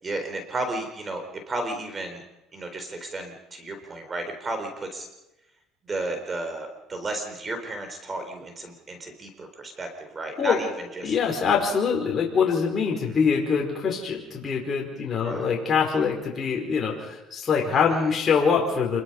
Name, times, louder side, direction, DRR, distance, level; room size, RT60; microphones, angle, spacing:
voice 1, 0.0-2.2 2.5-5.1 5.8-11.2 13.1-13.2 15.2-15.5 17.7-18.2, right 2 dB, 25° right, 6 dB, 3.8 m, -33 dB
voice 2, 11.0-19.0, left 6 dB, 35° left, -1 dB, 4.9 m, -24 dB
27.5 x 22.0 x 5.5 m, 0.95 s
cardioid pair, 115°, 0 cm